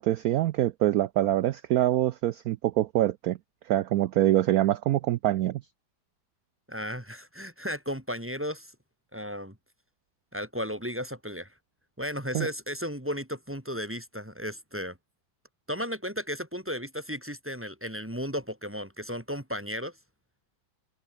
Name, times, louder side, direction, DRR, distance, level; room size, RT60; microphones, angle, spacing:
voice 1, 0.0-3.4 3.7-5.6 12.3-12.5, right 14 dB, 90° right, 0.8 m, -25 dB
voice 2, 6.7-8.7 9.1-9.6 10.3-11.5 12.0-15.0 15.7-19.9, equal, 5° right, 2.1 m, -34 dB
omnidirectional pair, 2.1 m